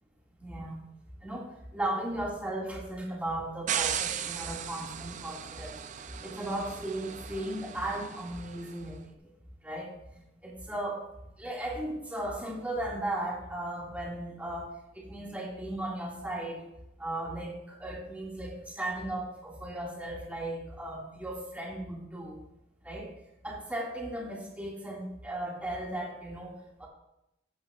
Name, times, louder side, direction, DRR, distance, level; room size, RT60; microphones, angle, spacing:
voice 1, 0.4-0.8 1.2-9.1 9.6-11.0 11.4-16.6 17.0-22.4 22.8-23.1 23.4-26.9, right 1 dB, 10° right, -3 dB, 1.7 m, -36 dB
sound 1, 3.7-8.8, right 9 dB, 40° right, 0.4 m, -37 dB
12.0 x 9.0 x 2.3 m, 0.86 s
head